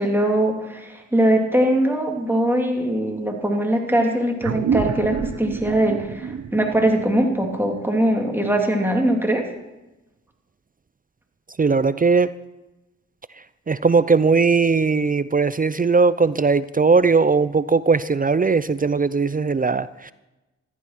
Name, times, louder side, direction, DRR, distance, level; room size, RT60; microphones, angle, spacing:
voice 1, 0.0-9.5, right 1 dB, 5° right, 1 dB, 3.3 m, -21 dB
sound 1, 4.4-9.3, right 7 dB, 60° right, 0.9 m, -29 dB
voice 2, 11.6-12.3 13.7-20.1, right 4 dB, 30° right, 16 dB, 0.6 m, -19 dB
14.5 x 12.0 x 6.1 m, 1.0 s
cardioid pair, 55°, 29 cm